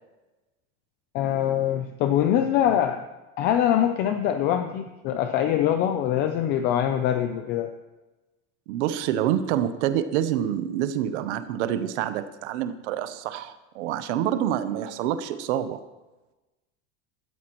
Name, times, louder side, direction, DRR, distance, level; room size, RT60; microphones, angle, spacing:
voice 1, 1.1-3.0 3.4-7.7, left 10 dB, 25° left, 7 dB, 0.4 m, -23 dB
voice 2, 8.7-15.8, right 10 dB, 60° right, 12 dB, 0.9 m, -27 dB
18.5 x 13.0 x 3.0 m, 1.1 s
supercardioid pair, 170°, 39 cm